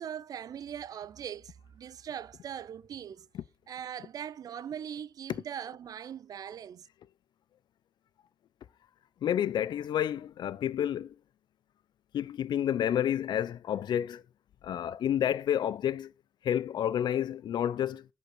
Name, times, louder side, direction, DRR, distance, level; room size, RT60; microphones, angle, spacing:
voice 1, 0.0-3.3 3.7-6.9, right 9 dB, 55° right, 0.4 m, -41 dB
voice 2, 9.2-11.1 12.1-14.2 14.6-16.1 16.4-18.1, left 10 dB, 85° left, 0.6 m, -30 dB
10.5 x 5.3 x 4.9 m
wide cardioid pair, 165°, 7 cm